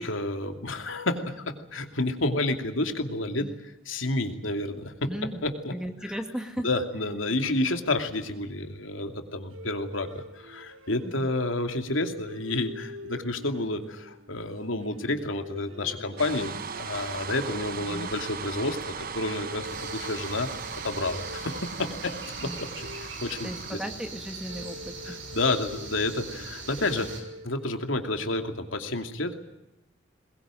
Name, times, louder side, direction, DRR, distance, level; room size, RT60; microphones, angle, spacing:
voice 1, 0.0-3.5 3.9-5.1 5.4-5.7 6.6-20.5 20.8-23.8 25.0-27.1 27.4-29.4, left 2 dB, 85° left, 5 dB, 2.7 m, -30 dB
voice 2, 5.1-6.7 11.0-11.4 17.8-18.1 22.4-22.7 23.4-25.2, equal, 5° right, 5 dB, 2.1 m, -37 dB
sound 1, 9.5-28.0, left 1 dB, 90° right, 2.3 m, -46 dB
sound 2, 16.2-23.7, right 6 dB, 45° right, 1.1 m, -38 dB
sound 3, 19.7-27.2, right 3 dB, 70° right, 6.6 m, -41 dB
22.0 x 21.0 x 9.0 m, 0.93 s
head